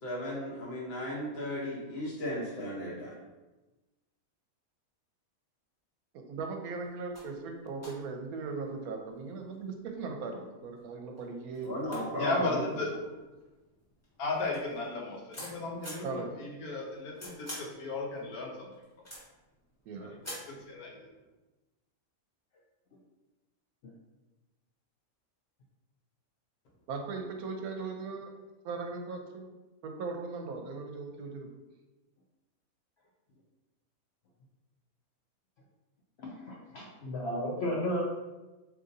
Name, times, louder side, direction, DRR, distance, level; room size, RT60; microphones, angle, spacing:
voice 1, 0.0-3.2 11.6-12.5, equal, 50° left, -4 dB, 1.0 m, -35 dB
voice 2, 6.1-12.9 16.0-16.3 19.9-20.1 26.9-28.3 28.6-29.5 29.8-31.5, right 4 dB, 80° right, 3 dB, 1.0 m, -39 dB
sound 1, 6.9-7.0 7.1-7.3 7.8-8.7 9.4-10.0 10.8-10.9 11.2-11.3 11.5-13.5 14.0-16.1 16.7-17.8 18.1-19.5 20.2-20.6, equal, 10° left, 1.1 m, -46 dB
voice 3, 12.2-12.9 14.2-18.7 20.0-20.2 20.5-20.9, left 3 dB, 85° left, -1 dB, 1.2 m, -35 dB
voice 4, 36.2-38.0, equal, 65° left, -3 dB, 0.6 m, -34 dB
3.8 x 3.0 x 2.6 m, 1.1 s
omnidirectional pair, 1.5 m